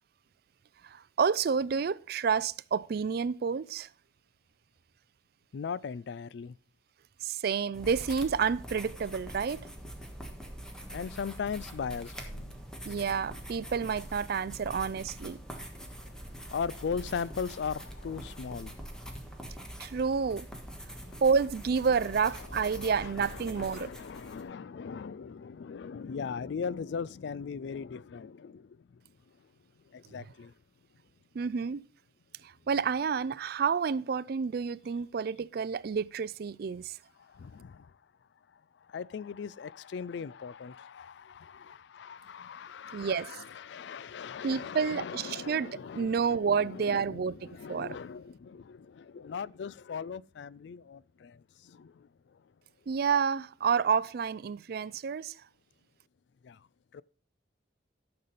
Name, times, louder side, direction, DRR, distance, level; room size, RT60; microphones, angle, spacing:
voice 1, 0.8-3.9 7.2-9.6 12.9-15.4 19.8-20.5 21.2-23.9 31.3-31.8 32.4-37.0 42.9-43.4 44.4-47.4 47.7-48.0 52.9-55.4, right 6 dB, 55° right, 0.4 m, -29 dB
voice 2, 5.5-6.6 10.9-12.6 16.3-18.8 20.9-21.2 22.0-29.5 29.9-30.5 37.2-38.0 38.5-52.5 56.4-56.7 56.9-57.0, left 6 dB, 65° left, 0.3 m, -39 dB
sound 1, 7.7-24.4, equal, 5° left, 1.3 m, -44 dB
12.5 x 6.8 x 4.0 m
head